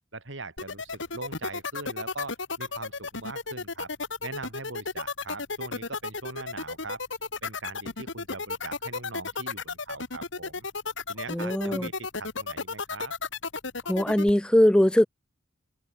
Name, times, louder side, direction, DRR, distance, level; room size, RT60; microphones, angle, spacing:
voice 1, 0.1-3.9 4.2-7.0 7.4-10.7 11.1-13.1, right 3 dB, 70° right, 3.4 m, -41 dB
sound 1, 0.6-14.3, left 4 dB, 65° left, 2.2 m, -33 dB
voice 2, 11.3-11.9 13.9-15.1, left 1 dB, 5° left, 0.3 m, -21 dB
head